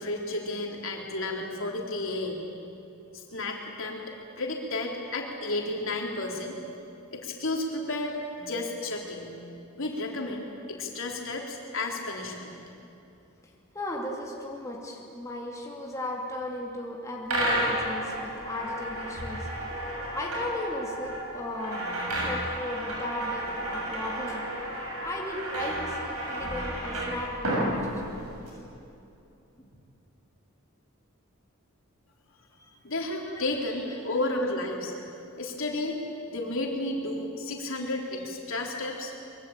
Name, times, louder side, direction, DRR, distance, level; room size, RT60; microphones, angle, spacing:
voice 1, 0.0-2.4 3.1-4.0 4.4-6.6 7.1-9.3 9.8-12.5 32.8-35.1 35.4-36.0 36.3-39.1, left 2 dB, 60° left, 0 dB, 3.7 m, -32 dB
voice 2, 13.7-19.5 19.9-21.9 22.1-24.5 25.0-28.2 29.6-29.7 32.6-32.7 33.4-33.5, left 1 dB, 15° left, -2 dB, 2.7 m, -36 dB
sound 1, 17.3-28.5, right 1 dB, 85° right, 7.2 m, -32 dB
24.0 x 23.0 x 9.0 m, 2.8 s
head